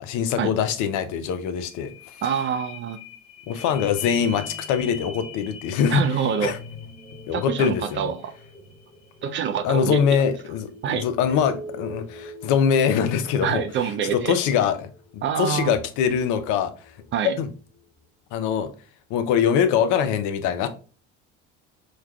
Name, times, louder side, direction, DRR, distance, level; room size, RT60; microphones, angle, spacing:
voice 1, 0.0-1.9 3.5-6.0 6.4-6.6 7.3-8.1 9.6-13.6 14.1-16.7 17.4-17.5 18.3-18.7 19.1-20.7, left 7 dB, 55° left, 0.6 m, -23 dB
sound 1, 1.4-17.2 17.7-17.8, left 2 dB, 15° left, 1.2 m, -43 dB
voice 2, 2.2-3.0 5.9-6.5 7.3-8.3 9.2-10.2 10.8-11.1 13.4-14.4 15.2-15.8 17.1-17.4, right 7 dB, 35° right, 0.4 m, -26 dB
4.5 x 2.3 x 2.2 m
hypercardioid pair, 65°, 36 cm